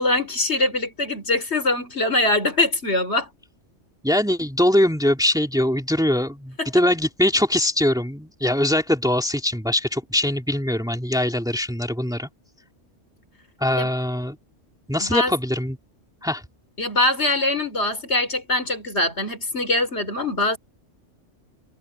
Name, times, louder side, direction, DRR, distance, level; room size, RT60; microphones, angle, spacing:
voice 1, 0.0-3.3 6.6-6.7 13.7-13.9 15.0-15.3 16.8-20.6, left 2 dB, 65° left, 4.6 m, -23 dB
voice 2, 4.0-12.3 13.6-14.4 14.9-15.8 16.2-16.4, left 1 dB, 5° right, 2.9 m, -22 dB
omnidirectional pair, 1.2 m